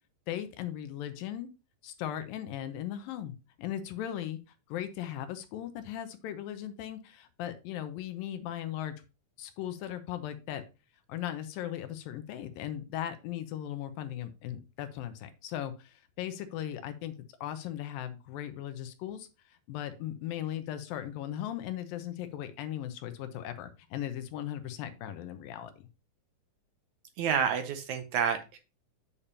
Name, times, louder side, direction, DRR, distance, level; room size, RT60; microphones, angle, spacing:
voice 1, 0.3-1.5 1.8-3.3 3.6-4.4 4.7-9.0 9.4-10.6 11.1-17.2 17.4-25.9, left 11 dB, 80° left, 9 dB, 2.4 m, -38 dB
voice 2, 27.2-28.6, right 7 dB, 75° right, 8 dB, 1.8 m, -29 dB
8.5 x 6.7 x 2.8 m, 0.29 s
omnidirectional pair, 4.1 m